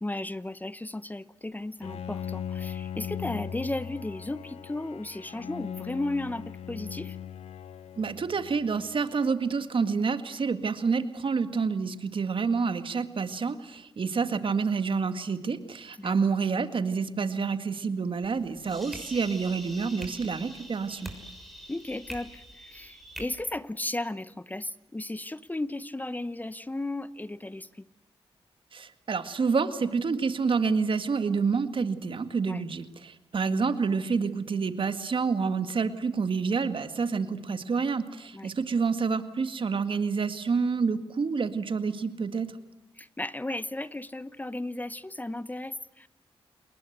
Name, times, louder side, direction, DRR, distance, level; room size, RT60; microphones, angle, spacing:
voice 1, 0.0-7.2 16.0-16.3 18.7-18.9 21.7-27.8 32.4-32.6 38.3-38.5 43.0-46.1, left 2 dB, 15° left, 16 dB, 0.9 m, -35 dB
Bowed string instrument, 1.8-8.9, left 9 dB, 85° left, 1.1 m, -39 dB
voice 2, 8.0-21.1 28.7-42.5, right 5 dB, 55° right, 10 dB, 2.0 m, -28 dB
sound 1, 18.2-23.2, equal, ahead, 6.3 m, -44 dB
29.0 x 21.0 x 8.1 m, 0.92 s
cardioid pair, 70°, 10 cm